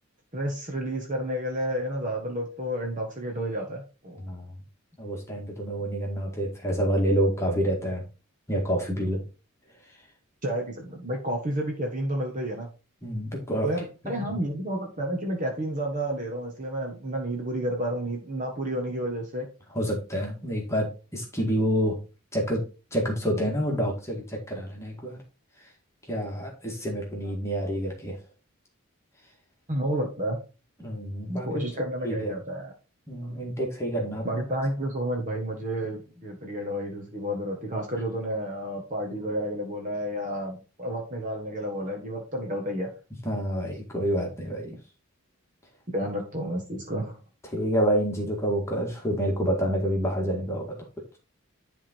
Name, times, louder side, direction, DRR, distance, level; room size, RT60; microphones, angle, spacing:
voice 1, 0.3-4.2 10.4-12.7 13.6-19.5 29.7-30.4 31.3-32.7 34.2-42.9 45.9-47.2, right 1 dB, 35° right, 1 dB, 1.4 m, -31 dB
voice 2, 5.0-8.0 8.5-9.2 13.0-13.7 14.0-14.3 19.7-22.0 22.3-22.6 22.9-25.2 26.1-28.2 30.8-31.7 32.0-32.3 33.1-34.4 43.3-44.8 47.5-50.8, equal, 15° left, -1 dB, 1.9 m, -28 dB
11.0 x 3.7 x 4.4 m, 0.31 s
head